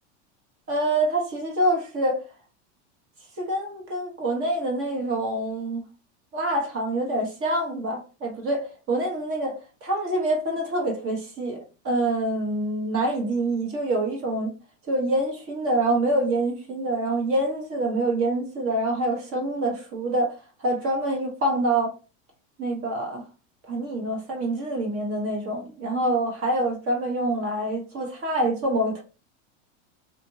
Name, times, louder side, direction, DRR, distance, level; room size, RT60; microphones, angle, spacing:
voice 1, 0.7-2.2 3.4-5.8 6.3-11.6 11.8-14.5 14.9-20.3 20.6-21.9 22.6-23.2 23.7-29.0, right 1 dB, 40° right, 1.0 m, -26 dB
2.8 x 2.5 x 2.7 m
supercardioid pair, 125°, 36 cm